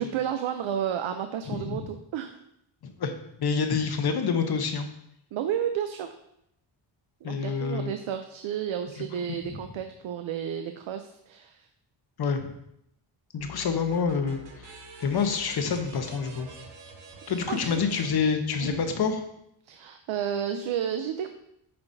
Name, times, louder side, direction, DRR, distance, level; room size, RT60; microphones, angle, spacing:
voice 1, 0.0-2.4 5.3-6.1 7.2-11.6 17.5-17.8 18.6-18.8 19.7-21.3, right 9 dB, 80° right, 7 dB, 0.6 m, -31 dB
voice 2, 1.5-1.8 2.8-3.1 3.4-4.9 7.2-7.9 9.5-9.6 12.2-12.5 13.3-16.5 17.3-19.2, left 5 dB, 55° left, 6 dB, 0.9 m, -27 dB
sound 1, 13.4-19.0, right 2 dB, 65° right, 1.3 m, -47 dB
8.6 x 5.7 x 2.7 m, 0.77 s
wide cardioid pair, 130°, 47 cm